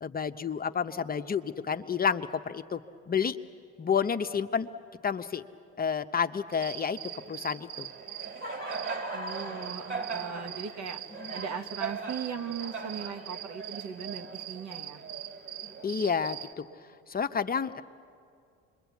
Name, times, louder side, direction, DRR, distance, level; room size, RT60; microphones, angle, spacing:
voice 1, 0.0-2.8 3.1-3.4 3.8-4.7 5.0-5.5 5.8-7.0 7.3-7.9 15.8-16.7 17.1-17.8, left 6 dB, 30° left, 9 dB, 0.8 m, -30 dB
Cricket, 6.5-16.5, right 5 dB, 35° right, 3.0 m, -38 dB
voice 2, 9.1-11.0 11.3-15.0, right 7 dB, 55° right, 8 dB, 1.4 m, -38 dB
26.5 x 22.0 x 8.3 m, 2.3 s
hypercardioid pair, 70°, 33 cm